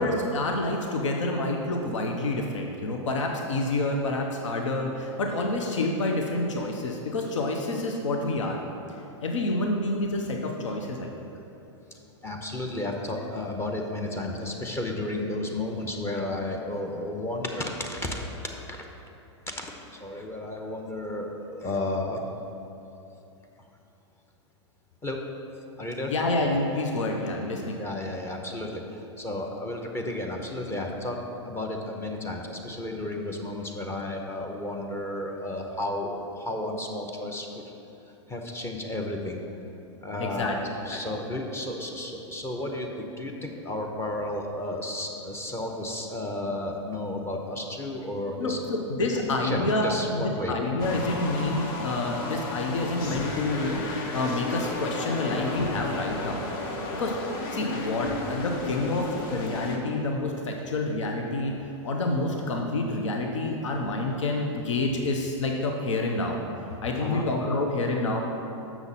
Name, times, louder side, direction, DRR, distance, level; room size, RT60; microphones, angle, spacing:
voice 1, 0.0-8.6 9.2-11.1 26.1-27.8 40.2-41.0 41.3-41.4 48.4-56.4 57.0-57.2 57.5-61.5 61.8-66.4 66.8-68.2, left 2 dB, 90° left, 2 dB, 0.7 m, -28 dB
voice 2, 12.2-18.3 18.7-18.8 19.6-19.7 20.0-22.2 25.0-25.2 25.8-26.1 27.8-37.6 38.3-39.4 40.0-42.9 43.2-48.6 49.1-50.5 55.2-55.3 67.0-67.3, left 1 dB, 15° left, 1 dB, 0.7 m, -33 dB
sound 1, 50.8-59.8, left 2 dB, 50° left, 1.1 m, -33 dB
7.0 x 5.9 x 4.1 m, 2.9 s
hypercardioid pair, 120°, 15 cm